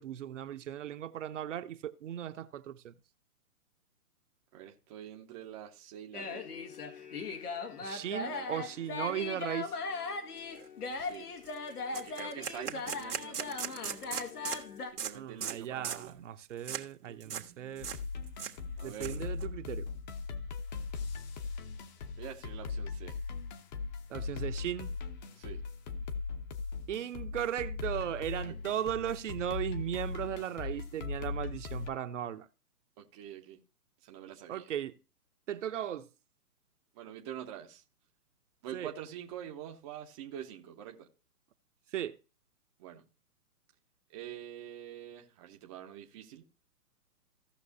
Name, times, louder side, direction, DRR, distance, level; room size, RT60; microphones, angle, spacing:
voice 1, 0.0-2.9 7.8-9.7 15.1-17.9 18.8-19.9 24.1-24.9 26.9-32.5 34.5-34.9 35.5-36.1 38.7-38.9 41.9-42.2, right 10 dB, 55° right, 0.9 m, -37 dB
voice 2, 4.5-6.5 8.2-8.5 11.0-11.3 11.9-13.8 14.9-16.2 17.1-17.9 18.8-19.3 22.2-23.2 25.3-25.6 28.4-28.8 33.0-33.6 34.0-34.6 36.9-37.8 38.6-41.1 42.8-43.0 44.1-46.5, right 10 dB, 15° right, 0.6 m, -46 dB
sound 1, 6.1-14.9, left 4 dB, 85° left, 1.9 m, -39 dB
sound 2, 10.5-10.7 11.0-11.2 11.5-11.6 11.9-14.6 15.0-15.1 15.4-15.6 15.8-16.1 16.6-16.8 17.2-17.5 17.8-18.0 18.3-19.5, right 8 dB, 85° right, 1.7 m, -38 dB
sound 3, 17.8-31.9, left 4 dB, 30° left, 0.9 m, -39 dB
16.5 x 6.0 x 2.7 m
hypercardioid pair, 145°, 45 cm